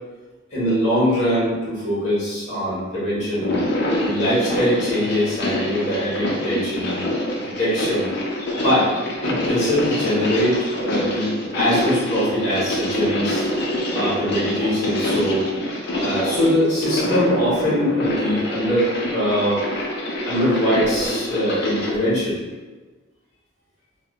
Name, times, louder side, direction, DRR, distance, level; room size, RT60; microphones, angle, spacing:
voice 1, 0.5-3.6 4.0-7.0 7.4-8.1 8.6-8.9 9.2-13.5 13.9-15.5 16.0-19.6 20.2-22.4, equal, 35° left, -10 dB, 1.2 m, -22 dB
sound 1, 3.3-22.0, left 1 dB, 60° left, 0.4 m, -26 dB
3.3 x 2.0 x 2.3 m, 1.3 s
head